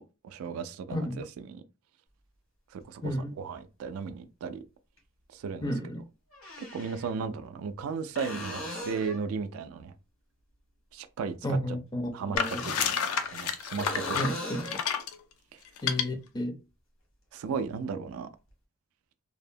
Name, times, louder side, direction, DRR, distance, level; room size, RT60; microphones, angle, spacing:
voice 1, 0.0-1.6 2.7-4.6 5.3-5.7 6.6-9.9 10.9-11.8 12.1-14.3 15.5-15.6 17.3-18.3, right 5 dB, 80° right, 0.3 m, -36 dB
voice 2, 0.9-1.2 3.0-3.3 5.6-6.0 11.4-12.7 14.1-14.8 15.8-16.5, equal, 20° left, 0.4 m, -32 dB
sound 1, 2.8-2.9 5.0-5.1 6.3-7.1 8.1-9.3 12.4-13.5 13.8-14.8 18.5-18.6, equal, 70° left, 1.0 m, -39 dB
sound 2, 12.3-15.1 15.8-16.0, left 7 dB, 85° left, 0.4 m, -30 dB
2.7 x 2.0 x 2.6 m
head